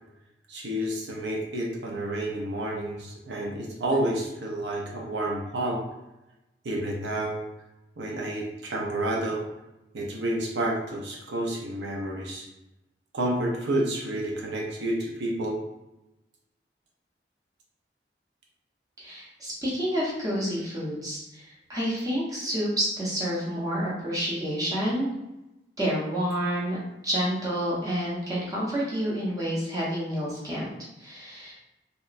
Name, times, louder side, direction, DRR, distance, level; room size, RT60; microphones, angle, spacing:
voice 1, 0.5-5.8 6.6-7.4 8.0-9.4 9.9-12.5 13.1-15.6, right 1 dB, 80° right, -1 dB, 0.5 m, -30 dB
voice 2, 19.0-25.1 25.8-26.8 27.0-30.7 31.0-31.5, equal, 20° right, -6 dB, 0.7 m, -29 dB
2.8 x 2.1 x 2.4 m, 0.93 s
head